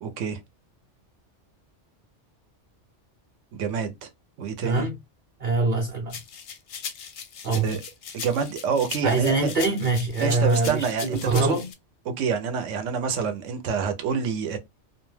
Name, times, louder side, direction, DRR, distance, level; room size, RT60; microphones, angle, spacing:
voice 1, 0.0-0.4 3.5-4.1 4.4-4.9 7.5-7.8 8.1-9.5 10.2-11.6 12.1-14.6, right 6 dB, 90° right, 1.0 m, -27 dB
voice 2, 4.6-4.9 5.4-6.2 7.4-7.8 9.0-11.7, right 3 dB, 50° right, 0.7 m, -24 dB
sound 1, 6.1-11.7, left 7 dB, 60° left, 0.6 m, -39 dB
2.4 x 2.2 x 3.1 m
omnidirectional pair, 1.3 m